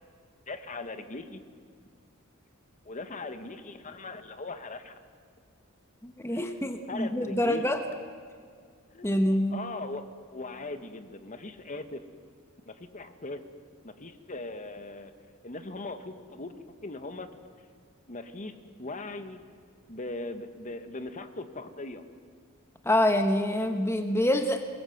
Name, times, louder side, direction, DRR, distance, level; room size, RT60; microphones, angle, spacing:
voice 1, 0.5-1.4 2.8-5.0 6.3-6.5 6.9-7.6 8.9-9.1 9.5-10.0 10.3-12.0 12.6-13.4 13.8-15.1 15.4-17.3 18.1-19.6 19.9-22.1, left 2 dB, 40° left, 9 dB, 1.3 m, -39 dB
voice 2, 6.0-7.8 9.0-9.6 22.8-24.6, left 1 dB, 10° left, 6 dB, 1.0 m, -26 dB
22.0 x 20.5 x 7.9 m, 2.1 s
head